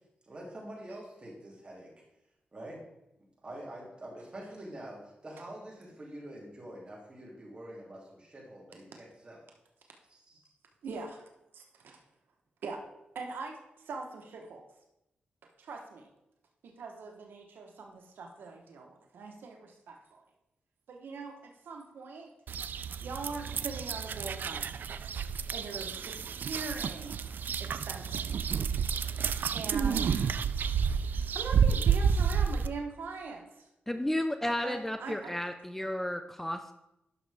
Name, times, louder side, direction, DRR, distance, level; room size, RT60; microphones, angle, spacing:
voice 1, 0.2-1.9 2.5-2.8 3.4-9.4 10.1-10.4, right 1 dB, 30° right, -3 dB, 2.7 m, -46 dB
voice 2, 10.8-12.0 12.6-12.8 13.1-13.6 13.8-14.6 15.6-16.1 16.6-20.2 20.9-22.3 23.0-24.7 25.5-27.2 27.6-28.3 29.5-30.5 31.0-33.7 34.6-35.3, right 4 dB, 85° right, 2 dB, 1.1 m, -42 dB
sound 1, 22.5-32.7, right 7 dB, 70° right, 0.3 m, -30 dB
voice 3, 33.9-36.7, left 1 dB, 10° left, 8 dB, 0.4 m, -33 dB
11.0 x 6.4 x 3.5 m, 0.88 s
wide cardioid pair, 100°, 3 cm